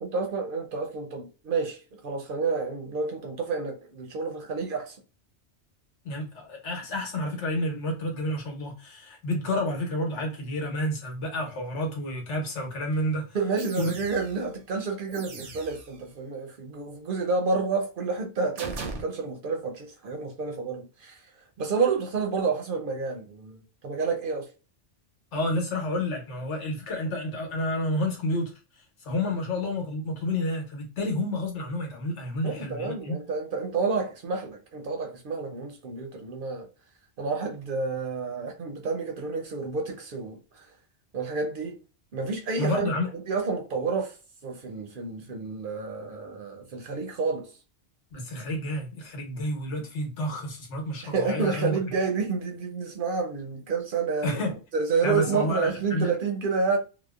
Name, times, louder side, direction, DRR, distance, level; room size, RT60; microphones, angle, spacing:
voice 1, 0.0-5.0 13.3-24.5 32.4-36.7 37.2-40.7 41.1-41.8 42.1-47.6 51.0-54.4 54.7-56.8, right 4 dB, 60° right, 0.6 m, -29 dB
voice 2, 6.0-13.4 13.8-13.9 25.3-28.5 29.0-33.2 42.6-43.1 48.1-51.8 54.2-54.6 55.0-56.1, left 1 dB, 85° left, 1.2 m, -30 dB
sound 1, 12.9-13.0 13.6-14.5 15.1-16.0 18.6-19.0, right 3 dB, 85° right, 0.9 m, -39 dB
2.8 x 2.0 x 2.3 m
omnidirectional pair, 1.2 m